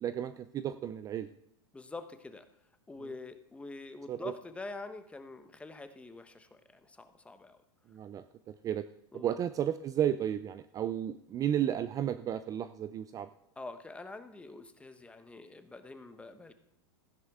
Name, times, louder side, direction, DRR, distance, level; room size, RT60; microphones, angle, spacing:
voice 1, 0.0-1.3 4.1-4.3 7.9-8.8 9.1-13.3, right 10 dB, 25° right, 13 dB, 0.4 m, -33 dB
voice 2, 1.7-2.5 2.9-7.6 9.1-9.3 13.6-16.5, left 3 dB, 10° left, 9 dB, 1.0 m, -46 dB
15.0 x 10.5 x 3.6 m, 0.79 s
hypercardioid pair, 125°, 14 cm